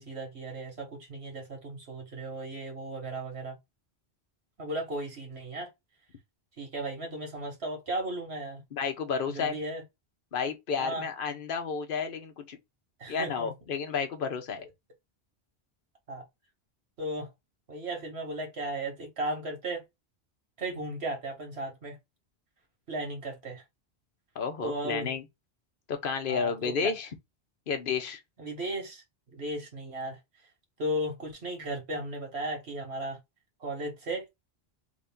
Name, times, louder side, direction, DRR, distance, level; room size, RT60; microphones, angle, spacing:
voice 1, 0.0-3.6 4.6-5.7 6.6-8.6 9.3-9.8 10.8-11.1 13.0-13.5 16.1-16.2 17.0-17.3 17.7-19.8 20.6-22.0 22.9-23.6 24.6-25.1 26.3-26.9 28.4-29.0 29.3-30.2 30.8-33.2 33.6-34.2, right 1 dB, 80° right, 1.8 m, -35 dB
voice 2, 8.7-9.6 10.3-12.6 13.1-14.6 24.3-25.2 25.9-27.1 27.7-28.2, left 6 dB, 60° left, 1.0 m, -31 dB
3.5 x 2.7 x 3.5 m
omnidirectional pair, 1.1 m